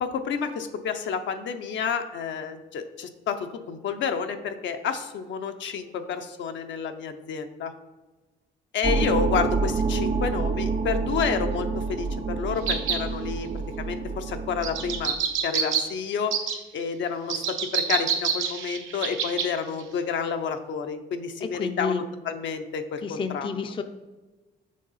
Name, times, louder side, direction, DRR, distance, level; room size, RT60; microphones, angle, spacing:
voice 1, 0.0-3.4 3.7-7.7 8.7-13.5 13.8-15.2 15.4-16.3 16.7-23.5, left 6 dB, 70° left, 7 dB, 0.6 m, -30 dB
sound 1, 8.8-15.1, right 4 dB, 30° right, 0.4 m, -28 dB
sound 2, 12.7-13.0 14.6-15.8 16.3-16.5 17.3-19.5 19.8-19.9, right 7 dB, 90° right, 0.8 m, -26 dB
voice 2, 21.4-22.0 23.0-23.8, left 5 dB, 25° left, 8 dB, 0.4 m, -30 dB
6.4 x 3.8 x 4.1 m, 1.2 s
cardioid pair, 90°, 20 cm